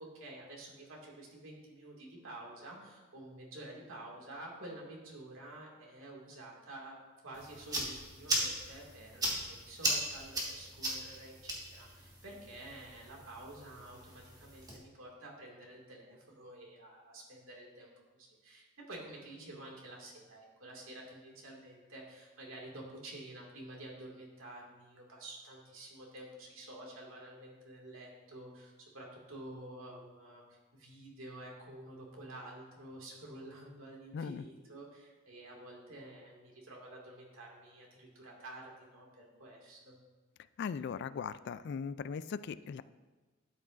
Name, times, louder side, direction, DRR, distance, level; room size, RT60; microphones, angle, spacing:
voice 1, 0.0-7.0 7.2-40.0, right 1 dB, 90° right, -2 dB, 2.1 m, -50 dB
sound 1, 7.3-14.8, right 1 dB, 20° right, 1.6 m, -38 dB
voice 2, 34.1-34.4 40.6-42.8, left 6 dB, 55° left, 15 dB, 0.3 m, -39 dB
12.5 x 8.5 x 2.5 m, 1.3 s
head